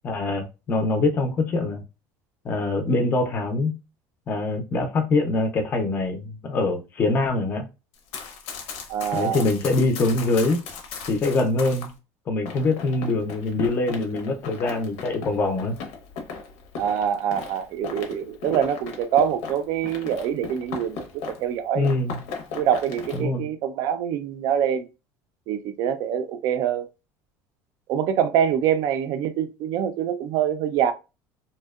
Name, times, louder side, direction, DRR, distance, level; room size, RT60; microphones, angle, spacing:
voice 1, 0.0-1.8 2.4-3.7 4.3-7.7 9.1-10.6 11.1-11.9 12.3-15.8 21.7-22.2 23.1-23.5, left 2 dB, 25° left, 0.4 m, -24 dB
Run, 7.9-11.9 12.5-21.5 21.8-23.2, left 5 dB, 90° left, 0.7 m, -37 dB
voice 2, 8.9-9.4 16.8-21.9 22.5-24.9 25.5-26.9 27.9-30.9, right 9 dB, 55° right, 0.3 m, -25 dB
2.6 x 2.1 x 2.3 m
cardioid pair, 150°, 7 cm